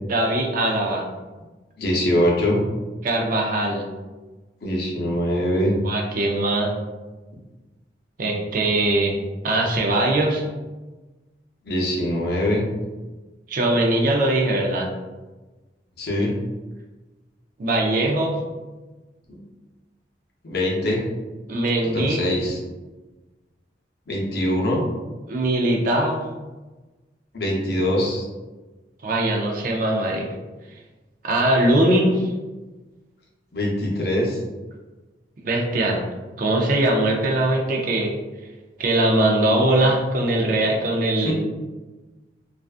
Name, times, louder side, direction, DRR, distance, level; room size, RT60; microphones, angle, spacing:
voice 1, 0.1-1.1 3.0-3.9 5.8-6.7 8.2-9.2 9.4-10.4 13.5-14.9 17.6-18.4 21.5-22.2 25.3-26.3 29.0-30.3 31.2-32.3 35.4-36.0 36.4-38.1 38.8-41.3, right 1 dB, 50° right, 1 dB, 0.4 m, -21 dB
voice 2, 1.8-2.6 4.6-5.8 11.6-12.7 16.0-16.3 20.4-21.0 21.9-22.6 24.1-24.9 27.3-28.2 33.5-34.4 41.2-41.3, left 1 dB, 65° left, -2 dB, 0.6 m, -23 dB
2.5 x 2.3 x 2.4 m, 1.2 s
head